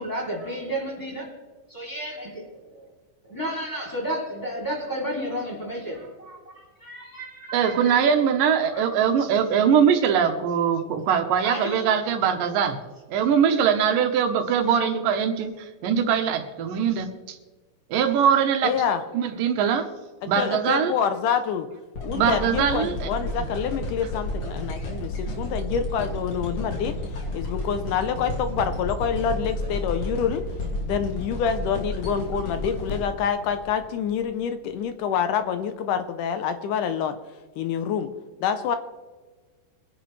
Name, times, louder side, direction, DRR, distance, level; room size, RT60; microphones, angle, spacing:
voice 1, 0.0-1.2 1.7-2.5 2.7-2.8 3.3-7.9 8.6-8.8 11.4-11.8, equal, 5° left, -3 dB, 2.5 m, -32 dB
voice 2, 7.5-12.8 13.1-15.5 15.8-17.4 17.9-18.7 19.1-19.9 20.3-20.9 22.1-23.1, right 7 dB, 80° right, 6 dB, 2.7 m, -22 dB
voice 3, 18.6-19.0 20.2-21.7 22.0-27.0 27.3-30.4 30.8-37.2 37.6-38.1 38.4-38.8, left 7 dB, 75° left, 9 dB, 2.2 m, -27 dB
sound 1, 21.9-34.1 34.7-34.8, left 1 dB, 45° left, 3.0 m, -32 dB
23.0 x 10.5 x 3.2 m, 1.4 s
omnidirectional pair, 3.9 m